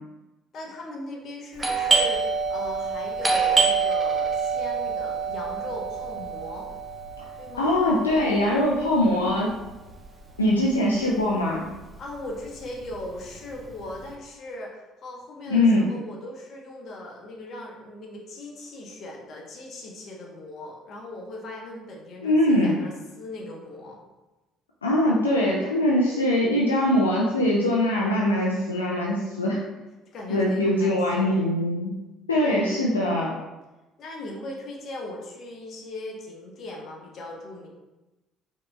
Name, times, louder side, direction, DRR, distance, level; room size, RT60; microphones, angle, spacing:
voice 1, 0.5-6.7 7.4-7.8 12.0-24.0 30.1-31.4 34.0-37.7, left 1 dB, 50° left, -1 dB, 0.9 m, -39 dB
Doorbell, 1.6-11.0 11.2-11.3 12.0-12.3 12.6-14.0, right 5 dB, 15° right, 0.8 m, -26 dB
voice 2, 7.6-9.5 10.4-11.7 15.5-15.9 22.2-22.8 24.8-29.6 30.3-31.9 32.3-33.3, left 1 dB, 90° left, -4 dB, 0.4 m, -22 dB
4.9 x 2.8 x 2.2 m, 1.1 s
figure-of-eight pair, 55°, 0 cm